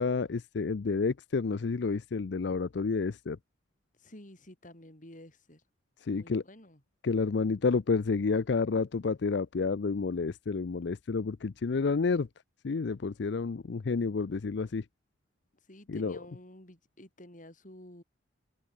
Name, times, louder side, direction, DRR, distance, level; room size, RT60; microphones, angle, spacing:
voice 1, 0.0-3.4 6.0-6.4 7.0-12.3 12.6-14.8 15.9-16.2, left 4 dB, 65° left, 0.5 m, -30 dB
voice 2, 4.0-5.6 6.1-6.8 15.7-18.0, left 1 dB, 40° left, 5.4 m, -51 dB
head